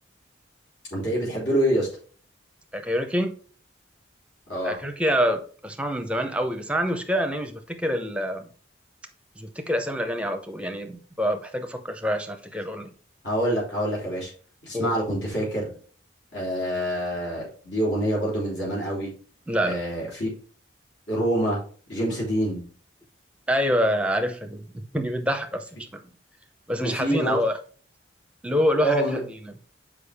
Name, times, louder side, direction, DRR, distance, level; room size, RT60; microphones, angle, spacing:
voice 1, 0.9-1.9 4.5-4.8 13.2-14.3 14.6-15.7 16.3-19.1 19.6-20.3 21.1-21.6 21.9-22.6 26.8-27.4 28.8-29.2, right 1 dB, 65° left, 3.7 m, -26 dB
voice 2, 2.7-3.4 4.6-8.5 9.4-12.9 14.7-14.9 19.5-19.8 23.5-24.7 24.9-26.0 26.7-27.6 28.4-29.2, equal, 5° right, 0.7 m, -26 dB
6.8 x 5.0 x 3.5 m
head